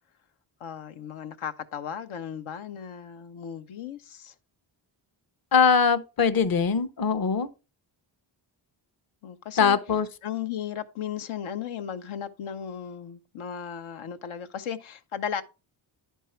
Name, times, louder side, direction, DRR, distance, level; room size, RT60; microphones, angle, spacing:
voice 1, 0.6-4.3 9.2-9.8 10.2-15.4, left 8 dB, 75° left, 0.9 m, -35 dB
voice 2, 5.5-7.5 9.6-10.1, left 6 dB, 45° left, 0.8 m, -22 dB
10.5 x 4.6 x 4.3 m
cardioid pair, 60°, 49 cm